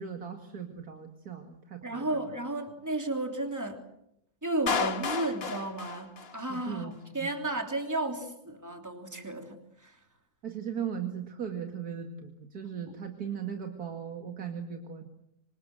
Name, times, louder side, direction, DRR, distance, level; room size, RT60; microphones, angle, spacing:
voice 1, 0.0-2.2 6.5-6.9 7.2-7.3 10.4-15.0, right 8 dB, 80° right, 4 dB, 2.7 m, -38 dB
voice 2, 1.8-3.9 4.4-10.0 12.9-13.0, right 2 dB, 10° right, 4 dB, 3.3 m, -33 dB
Clapping, 4.7-6.7, left 5 dB, 45° left, 1.4 m, -32 dB
26.5 x 25.5 x 7.9 m, 0.80 s
omnidirectional pair, 1.6 m